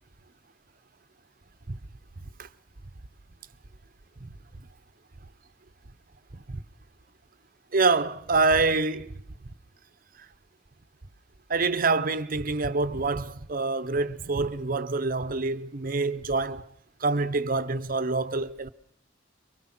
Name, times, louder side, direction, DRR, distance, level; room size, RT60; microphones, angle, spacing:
voice 1, 7.7-9.1 11.5-16.7 17.0-18.7, right 3 dB, 50° right, 0.9 m, -26 dB
24.5 x 24.0 x 6.0 m
head